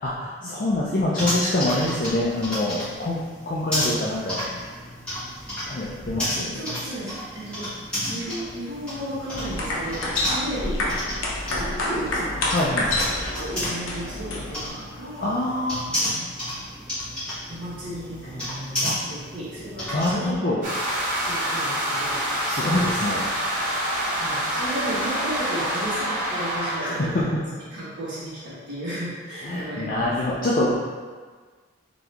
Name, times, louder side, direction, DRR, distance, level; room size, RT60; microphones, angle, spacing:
voice 1, 0.0-4.4 5.7-6.6 12.5-12.9 15.2-15.9 18.8-19.0 19.9-20.6 22.5-23.5 26.8-27.4 29.4-30.7, left 1 dB, 40° left, -6 dB, 0.4 m, -25 dB
sound 1, 1.2-20.1, equal, 5° left, 1.4 m, -32 dB
voice 2, 6.2-7.7 8.1-11.2 11.5-12.5 12.9-13.1 13.3-15.3 15.9-16.2 17.5-20.5 21.2-22.2 23.7-30.4, right 1 dB, 60° right, -9 dB, 1.4 m, -34 dB
sound 2, 9.3-14.7, left 1 dB, 80° left, 0.7 m, -28 dB
sound 3, 20.6-26.8, right 1 dB, 40° right, 1.0 m, -26 dB
4.0 x 2.9 x 3.4 m, 1.5 s
head